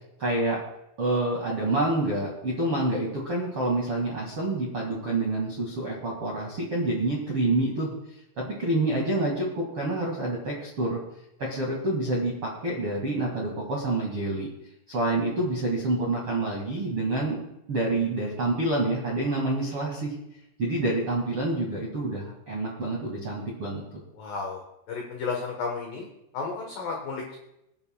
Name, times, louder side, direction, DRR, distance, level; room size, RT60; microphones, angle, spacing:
voice 1, 0.2-0.6 1.0-7.9 8.3-11.0 11.4-14.5 14.9-17.4 17.7-20.1 20.6-23.8, right 2 dB, 65° right, -3 dB, 1.4 m, -27 dB
voice 2, 24.2-24.6 24.9-26.1 26.3-27.4, left 4 dB, 85° left, 1 dB, 1.9 m, -32 dB
26.5 x 9.6 x 2.2 m, 0.86 s
omnidirectional pair, 5.9 m